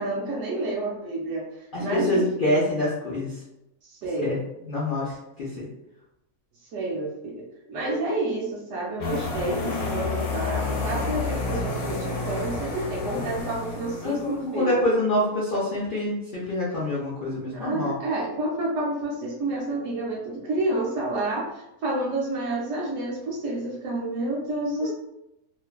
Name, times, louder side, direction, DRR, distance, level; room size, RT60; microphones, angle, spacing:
voice 1, 0.0-2.2 3.8-4.3 6.7-7.4 7.7-14.7 17.5-24.9, right 2 dB, 65° right, -3 dB, 0.8 m, -29 dB
voice 2, 1.7-3.4 4.2-4.4 4.6-5.6 13.1-13.2 14.0-17.9 24.8-24.9, left 1 dB, 85° left, -7 dB, 0.4 m, -26 dB
sound 1, 9.0-14.5, left 3 dB, 65° left, 1.0 m, -30 dB
2.5 x 2.2 x 2.2 m, 0.87 s
omnidirectional pair, 1.6 m